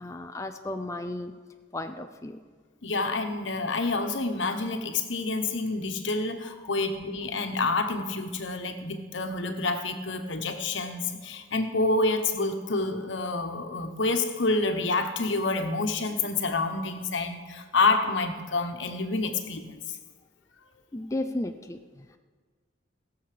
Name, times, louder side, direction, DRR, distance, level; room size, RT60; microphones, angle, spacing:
voice 1, 0.0-1.3 1.7-2.4 20.9-22.2, left 1 dB, 15° left, 6 dB, 0.4 m, -34 dB
voice 2, 2.8-20.0, left 3 dB, 75° left, 6 dB, 1.2 m, -28 dB
16.5 x 6.9 x 6.8 m, 1.5 s
head